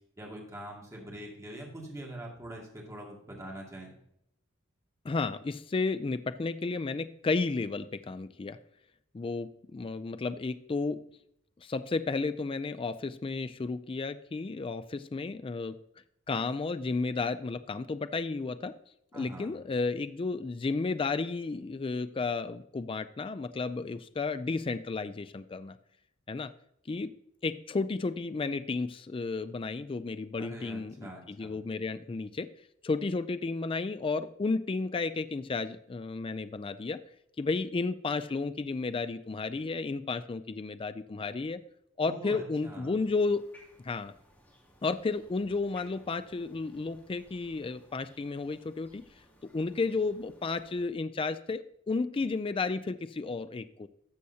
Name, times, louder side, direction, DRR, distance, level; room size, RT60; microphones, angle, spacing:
voice 1, 0.2-3.9 19.1-19.5 30.4-31.5 42.0-43.0, right 1 dB, 15° right, -2 dB, 2.3 m, -44 dB
voice 2, 5.0-8.6 9.1-11.0 11.6-15.8 16.3-18.7 19.1-25.8 26.3-26.5 26.9-27.1 27.4-32.5 32.8-37.0 37.4-41.6 42.0-43.5 43.8-44.1 44.8-49.0 49.5-53.9, left 3 dB, 25° left, 12 dB, 0.4 m, -32 dB
sound 1, 42.9-50.9, equal, 10° left, 2.4 m, -60 dB
13.0 x 6.9 x 2.8 m, 0.74 s
head